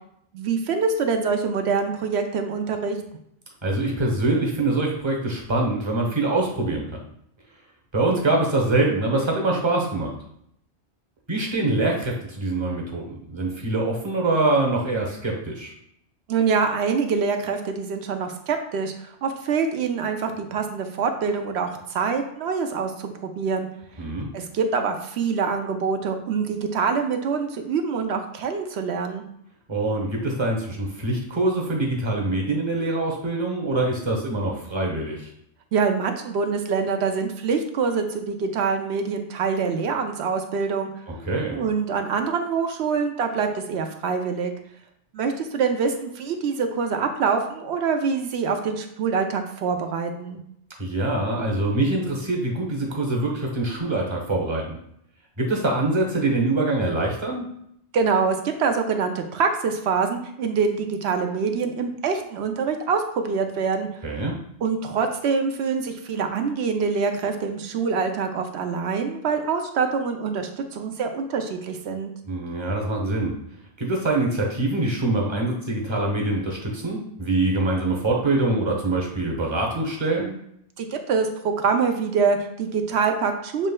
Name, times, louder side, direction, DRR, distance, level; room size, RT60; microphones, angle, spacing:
voice 1, 0.3-3.0 16.3-18.9 19.2-23.7 24.3-29.3 35.7-40.9 41.5-44.5 45.1-50.4 57.9-63.9 64.6-72.1 80.8-83.7, right 5 dB, 75° right, 5 dB, 0.8 m, -25 dB
voice 2, 3.6-7.0 7.9-10.2 11.3-15.7 24.0-24.3 29.7-35.3 41.1-41.6 50.8-54.8 55.4-57.5 64.0-64.3 72.3-73.3 73.8-80.4, right 2 dB, 25° right, 0 dB, 0.9 m, -24 dB
6.7 x 3.1 x 2.2 m, 0.73 s
omnidirectional pair, 1.2 m